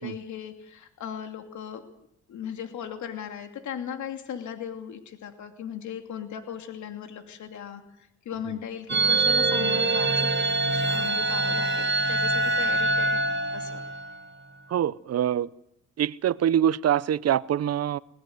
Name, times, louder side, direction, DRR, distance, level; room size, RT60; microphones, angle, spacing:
voice 1, 0.0-1.8 2.3-13.8, left 8 dB, 70° left, 6 dB, 2.7 m, -38 dB
sound 1, 8.9-14.3, right 2 dB, 35° right, 2.3 m, -24 dB
voice 2, 14.7-15.5 16.0-18.0, right 10 dB, 55° right, 18 dB, 0.9 m, -24 dB
21.0 x 21.0 x 8.0 m, 0.74 s
cardioid pair, 90°, 30 cm